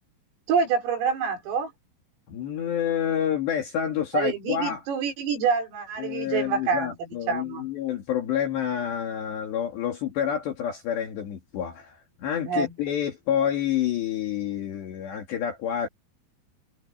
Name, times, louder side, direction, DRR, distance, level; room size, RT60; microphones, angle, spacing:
voice 1, 0.5-1.7 4.1-7.7 12.5-12.7, right 6 dB, 80° right, 7.6 m, -27 dB
voice 2, 2.3-4.8 6.0-15.9, left 9 dB, 60° left, 4.4 m, -28 dB
omnidirectional pair, 5.8 m